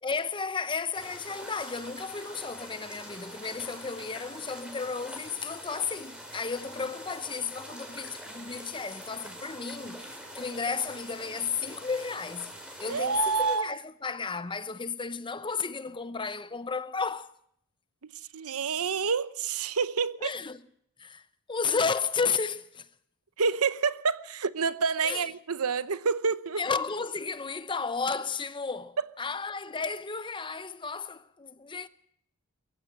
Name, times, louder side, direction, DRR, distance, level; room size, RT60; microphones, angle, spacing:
voice 1, 0.0-17.3 20.2-20.6 21.0-21.2 21.5-22.9 25.0-25.3 26.6-31.9, left 5 dB, 20° left, 0.7 m, -33 dB
sound 1, 0.9-13.6, equal, 5° right, 4.1 m, -44 dB
voice 2, 12.9-13.8 18.3-20.3 23.4-26.6, right 5 dB, 80° right, 0.8 m, -28 dB
23.0 x 15.5 x 7.6 m
head